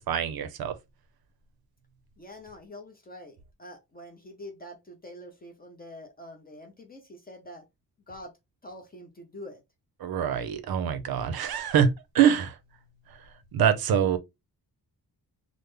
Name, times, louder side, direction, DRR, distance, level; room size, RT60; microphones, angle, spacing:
voice 1, 0.1-0.8 10.0-12.6 13.1-13.2 13.5-14.2, right 8 dB, 70° right, 0.6 m, -24 dB
voice 2, 2.2-7.7 8.1-8.3 8.6-9.6, left 1 dB, 25° left, 0.5 m, -45 dB
3.5 x 2.0 x 3.1 m
wide cardioid pair, 180°, 39 cm